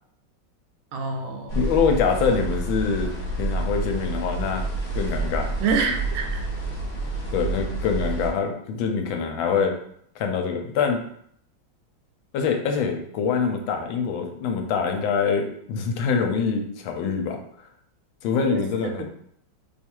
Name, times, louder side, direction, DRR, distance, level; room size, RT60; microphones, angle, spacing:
voice 1, 0.9-1.6 5.6-6.4 18.4-19.0, right 5 dB, 80° right, 4 dB, 1.4 m, -27 dB
sound 1, 1.5-8.3, right 2 dB, 45° left, 0.8 m, -28 dB
voice 2, 1.6-3.1 3.4-4.6 4.9-5.5 7.3-9.8 10.2-11.0 12.3-17.7 18.2-19.0, left 6 dB, 80° left, 4 dB, 1.3 m, -24 dB
3.3 x 2.4 x 4.4 m, 0.66 s
omnidirectional pair, 2.2 m